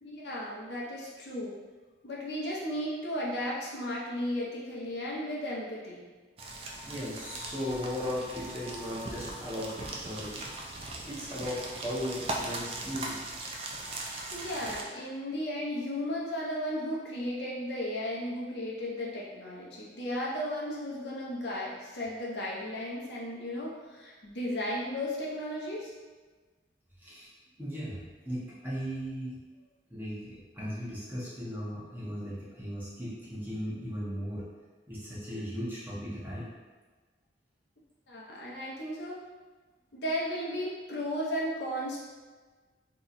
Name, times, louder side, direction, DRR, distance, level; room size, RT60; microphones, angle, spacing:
voice 1, 0.0-1.5 2.0-6.1 14.1-25.9 38.1-39.2 39.9-42.0, equal, 65° left, -5 dB, 0.7 m, -35 dB
sound 1, 6.4-14.8, right 2 dB, 30° right, 0.3 m, -39 dB
voice 2, 6.8-10.4 11.0-13.2 27.0-27.3 27.6-29.4 29.9-34.4 34.9-36.5, equal, 10° right, -9 dB, 0.8 m, -37 dB
2.8 x 2.3 x 3.9 m, 1.3 s
head